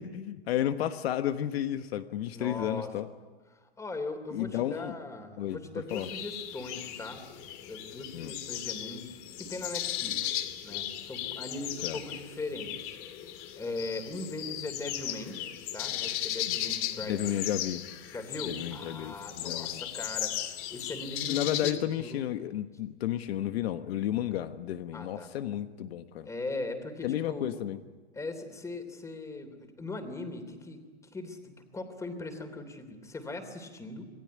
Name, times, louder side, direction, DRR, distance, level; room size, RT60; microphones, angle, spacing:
voice 1, 0.0-3.1 4.3-4.9 5.4-5.6 5.9-6.1 8.1-8.3 11.8-12.0 16.5-16.6 17.0-17.8 18.4-19.8 21.3-26.3 27.0-27.8, left 11 dB, 65° left, 9 dB, 1.4 m, -32 dB
voice 2, 2.3-2.9 3.8-7.3 7.7-9.1 9.4-13.0 13.6-15.4 15.7-17.5 18.1-22.2 24.9-25.3 26.2-27.6 28.1-30.8 31.1-34.1, left 2 dB, 10° left, 8 dB, 3.2 m, -39 dB
sound 1, 5.9-21.7, left 12 dB, 40° left, 2.5 m, -36 dB
27.5 x 19.0 x 9.7 m, 1.4 s
supercardioid pair, 145°, 32 cm